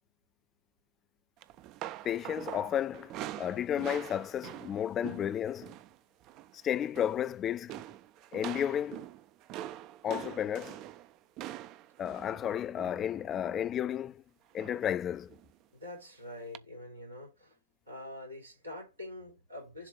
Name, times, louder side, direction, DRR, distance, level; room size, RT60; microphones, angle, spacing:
sound 1, 1.4-6.0 6.2-6.5 6.8-7.3 7.7-13.7 14.6-15.0 15.3-15.5 16.5-16.6, right 13 dB, 40° right, 0.4 m, -44 dB
voice 1, 2.0-3.1 3.4-5.7 6.6-7.7 8.3-9.0 10.0-10.8 12.0-14.2 14.5-15.3, left 10 dB, 25° left, 0.3 m, -32 dB
voice 2, 15.7-17.6 17.9-19.9, left 1 dB, 85° right, 3.4 m, -45 dB
7.1 x 2.4 x 5.4 m
figure-of-eight pair, 90°, 0 cm